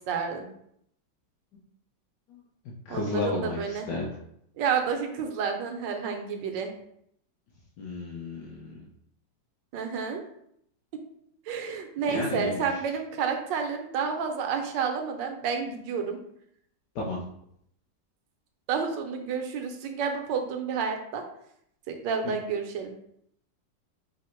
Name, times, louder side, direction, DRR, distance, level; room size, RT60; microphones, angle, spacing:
voice 1, 0.1-0.5 2.9-3.9 4.6-6.7 9.7-10.2 11.5-16.2 18.7-21.2 21.9-22.9, right 6 dB, 80° right, 4 dB, 1.3 m, -30 dB
voice 2, 2.8-4.1 7.8-8.9 12.1-13.0 16.9-17.2 22.2-22.4, left 3 dB, 70° left, -3 dB, 1.2 m, -33 dB
5.1 x 2.1 x 4.3 m, 0.71 s
omnidirectional pair, 1.9 m